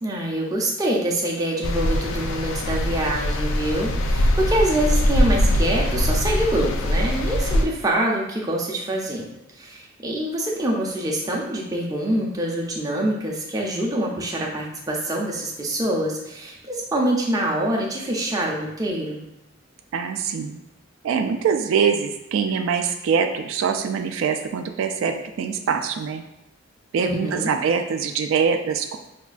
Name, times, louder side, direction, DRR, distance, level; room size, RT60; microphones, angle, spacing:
voice 1, 0.0-9.3 9.6-19.2 27.0-27.5, right 1 dB, 20° right, -2 dB, 0.5 m, -25 dB
sound 1, 1.6-7.7, left 1 dB, 85° left, 0.4 m, -22 dB
voice 2, 19.9-20.6 21.0-26.2 26.9-29.0, right 6 dB, 80° right, 6 dB, 0.3 m, -23 dB
5.0 x 2.3 x 2.4 m, 0.89 s
head